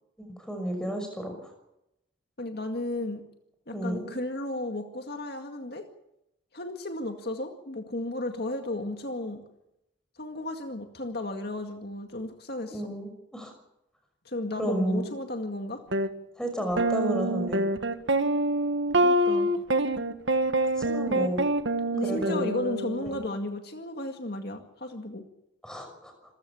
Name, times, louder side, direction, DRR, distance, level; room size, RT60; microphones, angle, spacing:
voice 1, 0.5-1.5 3.7-4.1 12.6-13.5 14.6-15.1 16.4-17.6 20.8-21.4 22.0-22.5 23.0-23.3 25.6-26.1, equal, 5° left, 4 dB, 6.0 m, -32 dB
voice 2, 2.4-3.2 3.7-5.8 6.5-9.4 10.2-12.9 14.3-15.8 19.0-19.5 21.9-25.2, left 1 dB, 55° left, 5 dB, 2.1 m, -34 dB
sound 1, 15.9-16.1 16.8-23.1, right 1 dB, 70° right, 1.5 m, -26 dB
26.5 x 15.5 x 7.2 m, 0.85 s
head